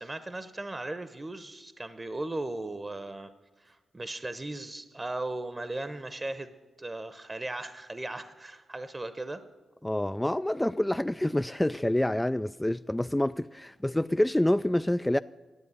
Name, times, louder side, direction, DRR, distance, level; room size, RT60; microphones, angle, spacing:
voice 1, 0.0-3.3 3.6-6.5 6.8-9.4, right 2 dB, 25° right, 0.9 m, -37 dB
voice 2, 9.8-15.2, left 1 dB, 10° left, 0.3 m, -27 dB
11.0 x 8.2 x 9.6 m
supercardioid pair, 50°, 0 cm